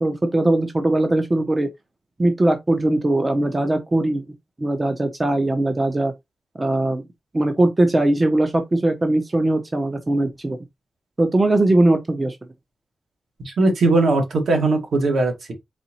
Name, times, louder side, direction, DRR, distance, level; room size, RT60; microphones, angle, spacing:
voice 1, 0.0-1.7 2.2-4.2 4.6-6.1 6.6-7.0 7.3-10.6 11.2-12.4, right 2 dB, 20° right, 0.7 m, -20 dB
voice 2, 13.4-15.5, right 2 dB, 70° right, 1.7 m, -19 dB
4.2 x 3.9 x 2.9 m
wide cardioid pair, 155°, 0 cm